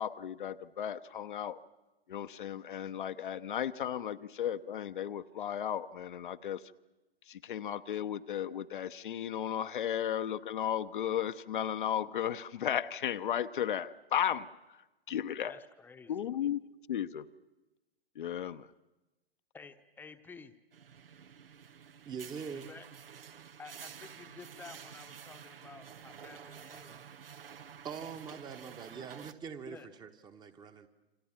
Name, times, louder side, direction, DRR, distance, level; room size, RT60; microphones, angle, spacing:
voice 1, 0.0-1.6 2.1-6.7 7.3-14.8 15.1-15.6 16.1-16.6 16.9-17.3 18.1-18.7, left 10 dB, 50° left, 10 dB, 0.9 m, -35 dB
voice 2, 15.4-16.2 19.5-20.5 22.5-22.9 23.6-27.1 29.7-29.9, left 4 dB, 5° left, 9 dB, 1.1 m, -52 dB
sound 1, 20.7-29.3, right 7 dB, 60° right, 1.1 m, -50 dB
voice 3, 22.0-22.7 27.8-30.9, right 6 dB, 15° right, 8 dB, 1.2 m, -43 dB
28.0 x 26.0 x 7.4 m, 1.1 s
figure-of-eight pair, 115°, 31 cm